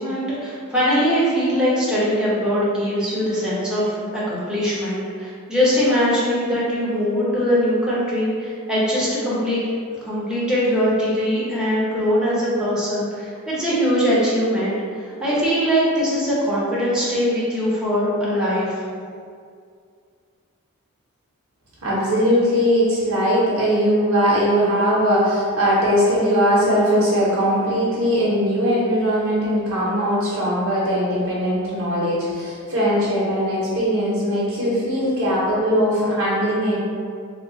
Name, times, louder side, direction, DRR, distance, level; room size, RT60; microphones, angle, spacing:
voice 1, 0.0-9.6 10.0-18.8, equal, 5° right, -9 dB, 0.7 m, -21 dB
voice 2, 21.8-36.8, equal, 65° right, -7 dB, 0.7 m, -20 dB
2.9 x 2.1 x 3.6 m, 2.2 s
head